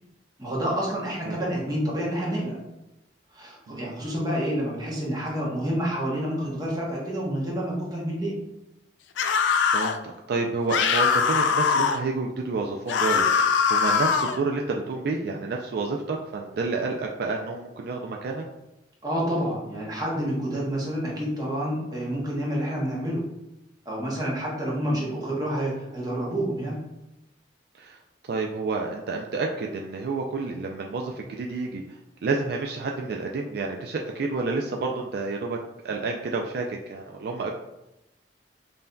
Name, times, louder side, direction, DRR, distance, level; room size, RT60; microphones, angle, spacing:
voice 1, 0.4-2.6 3.3-8.4 19.0-23.2 23.8-26.8, equal, 20° right, -4 dB, 1.0 m, -28 dB
sound 1, 9.2-10.0 10.7-12.0 12.9-14.4, left 6 dB, 80° left, 0.3 m, -22 dB
voice 2, 9.7-18.4 24.9-25.2 27.8-28.0 28.3-35.6 35.8-37.5, right 3 dB, 60° right, 1 dB, 0.3 m, -30 dB
5.5 x 2.6 x 2.2 m, 0.92 s
head